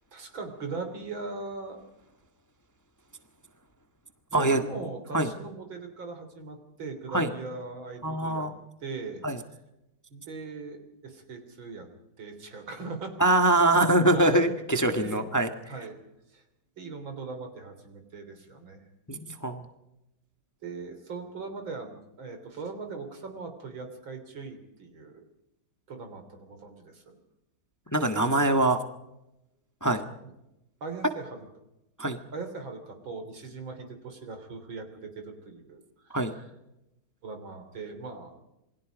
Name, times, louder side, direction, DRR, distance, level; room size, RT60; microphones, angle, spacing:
voice 1, 0.1-1.8 4.3-8.5 8.8-9.6 10.1-11.9 12.2-13.4 14.1-14.5 14.7-15.2 15.6-15.9 16.3-16.4 16.8-18.8 20.6-25.2 25.9-27.2 30.8-31.4 32.3-36.5 37.2-38.4, right 4 dB, 80° right, 6 dB, 4.1 m, -40 dB
voice 2, 8.0-8.5 9.2-9.4 13.2-15.5 19.1-19.7 27.9-28.8 29.8-30.0 32.0-32.2 36.1-36.3, right 1 dB, 10° left, 7 dB, 1.4 m, -23 dB
28.0 x 21.0 x 5.2 m, 0.90 s
omnidirectional pair, 2.1 m